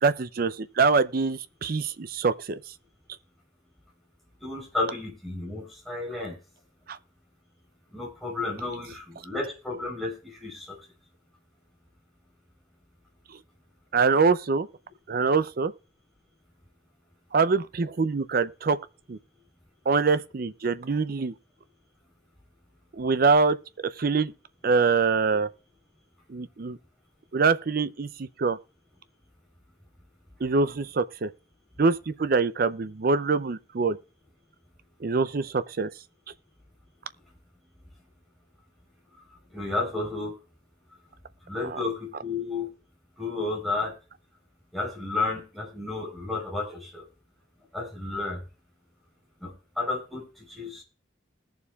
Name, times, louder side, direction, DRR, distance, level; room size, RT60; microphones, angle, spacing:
voice 1, 0.0-2.6 6.9-7.0 13.9-14.7 15.1-15.7 17.3-18.8 19.1-19.2 19.9-21.3 22.9-23.6 23.8-24.3 24.6-25.5 26.3-26.8 27.3-28.6 30.4-31.3 31.8-34.0 35.0-35.9 41.6-41.8, right 4 dB, 50° right, 0.5 m, -24 dB
voice 2, 4.4-6.4 7.9-10.9 39.5-40.4 41.5-42.7 43.2-43.9 44.7-47.0 47.7-48.4 49.4-50.8, left 3 dB, ahead, 4.0 m, -32 dB
20.5 x 7.0 x 2.4 m
head